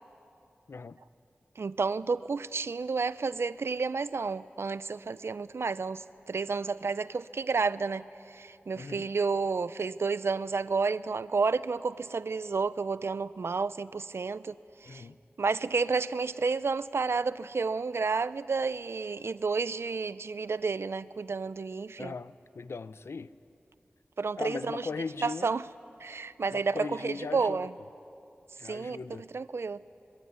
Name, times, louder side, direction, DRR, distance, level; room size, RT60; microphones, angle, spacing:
voice 1, 0.7-1.0 8.7-9.1 14.8-15.2 22.0-23.3 24.4-25.5 26.5-27.7 28.6-29.3, left 4 dB, 90° left, 0.7 m, -39 dB
voice 2, 1.6-15.1 15.4-22.1 24.2-24.9 25.2-25.6 26.0-27.7 28.6-29.0 29.3-29.8, right 4 dB, 80° right, 0.6 m, -31 dB
26.5 x 22.5 x 9.5 m
wide cardioid pair, 75°, 4 cm